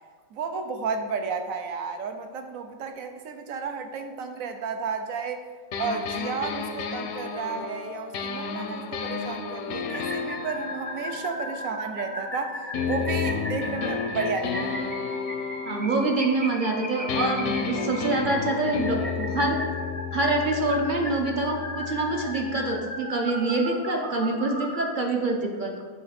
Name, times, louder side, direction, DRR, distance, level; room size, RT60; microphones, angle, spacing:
voice 1, 0.3-5.4 5.8-14.9, right 5 dB, 75° right, 6 dB, 1.1 m, -32 dB
sound 1, 5.7-12.3 12.7-16.8 17.1-22.8, left 5 dB, 85° left, 1.1 m, -32 dB
sound 2, 9.9-24.9, equal, 10° right, 0.5 m, -36 dB
voice 2, 15.7-19.6 20.1-25.8, right 2 dB, 50° right, 2 dB, 0.7 m, -26 dB
7.7 x 3.3 x 5.8 m, 1.5 s
omnidirectional pair, 1.5 m